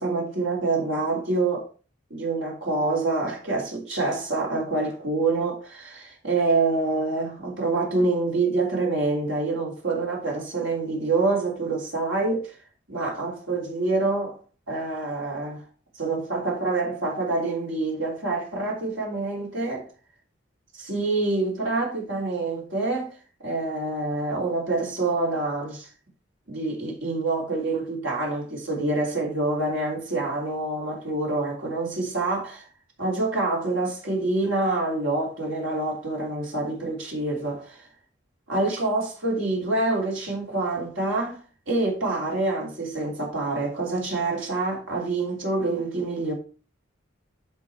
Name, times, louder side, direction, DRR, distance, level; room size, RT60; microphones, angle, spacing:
voice 1, 0.0-1.7 2.1-12.5 12.9-14.4 14.7-15.6 15.9-19.8 20.7-23.1 23.4-25.9 26.5-32.7 33.0-37.9 38.5-41.4 41.7-46.3, right 3 dB, 75° right, 3.1 m, -26 dB
10.5 x 3.8 x 4.5 m
head